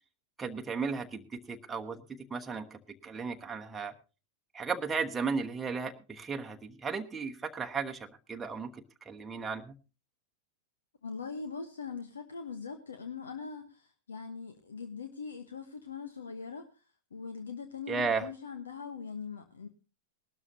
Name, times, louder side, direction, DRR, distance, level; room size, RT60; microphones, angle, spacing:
voice 1, 0.4-2.0 2.3-3.9 4.5-9.7 17.9-18.3, right 5 dB, 15° right, 4 dB, 1.0 m, -35 dB
voice 2, 11.0-19.7, left 5 dB, 70° left, 7 dB, 1.1 m, -42 dB
20.0 x 12.5 x 2.7 m, 0.31 s
figure-of-eight pair, 90°, 0 cm